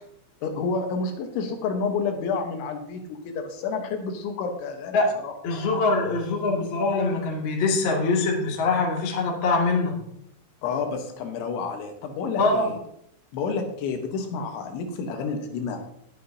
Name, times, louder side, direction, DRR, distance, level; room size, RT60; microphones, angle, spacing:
voice 1, 0.4-5.3 10.6-12.8 13.3-15.9, left 4 dB, 75° left, 4 dB, 3.4 m, -30 dB
voice 2, 5.4-9.9 12.4-12.7, left 3 dB, 45° left, -1 dB, 1.6 m, -23 dB
19.5 x 7.7 x 2.8 m, 0.72 s
omnidirectional pair, 5.8 m